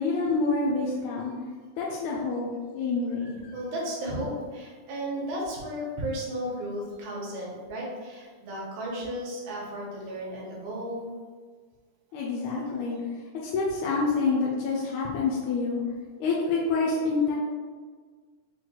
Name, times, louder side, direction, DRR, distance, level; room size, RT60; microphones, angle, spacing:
voice 1, 0.0-1.3 1.8-2.5 2.7-3.4 12.1-13.0 13.4-15.8 16.2-17.4, left 4 dB, 80° left, -4 dB, 1.9 m, -27 dB
voice 2, 3.5-11.1, equal, 85° right, -3 dB, 2.3 m, -34 dB
5.9 x 2.3 x 2.9 m, 1.5 s
omnidirectional pair, 3.3 m